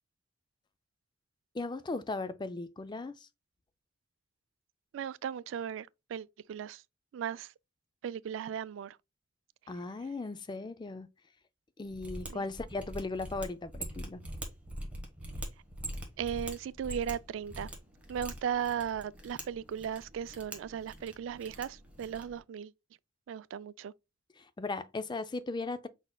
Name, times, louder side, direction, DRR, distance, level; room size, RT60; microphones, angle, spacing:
voice 1, 1.5-3.3 9.7-11.1 11.8-14.2 24.4-25.9, left 3 dB, 25° left, 0.4 m, -37 dB
voice 2, 4.9-6.8 7.1-7.5 8.0-9.0 12.3-12.4 16.2-17.7 18.1-22.7 23.3-23.9, right 8 dB, 85° right, 0.3 m, -37 dB
Mechanisms, 11.9-22.4, right 1 dB, 5° right, 1.2 m, -44 dB
5.2 x 4.2 x 2.2 m
head